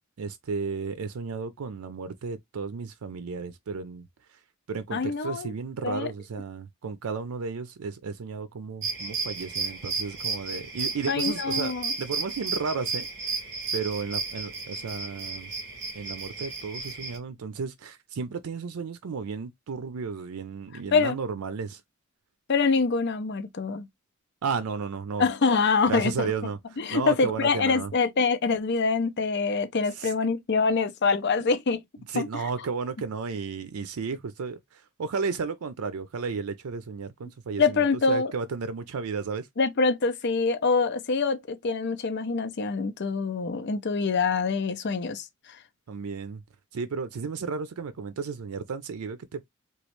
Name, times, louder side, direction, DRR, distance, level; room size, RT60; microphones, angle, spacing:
voice 1, 0.2-4.4 4.7-11.7 12.0-13.4 13.7-15.5 15.9-21.8 24.4-25.3 25.9-27.9 29.9-30.1 32.1-39.5 45.9-46.4 46.7-49.5, right 5 dB, 85° right, 0.5 m, -33 dB
voice 2, 4.9-5.5 5.8-6.1 11.1-11.9 20.9-21.2 22.5-23.9 25.2-26.3 26.8-31.8 32.1-32.3 37.6-38.3 39.6-45.3, left 4 dB, 50° left, 0.6 m, -25 dB
sound 1, 8.8-17.2, right 4 dB, 60° right, 1.3 m, -33 dB
3.1 x 2.3 x 3.0 m
head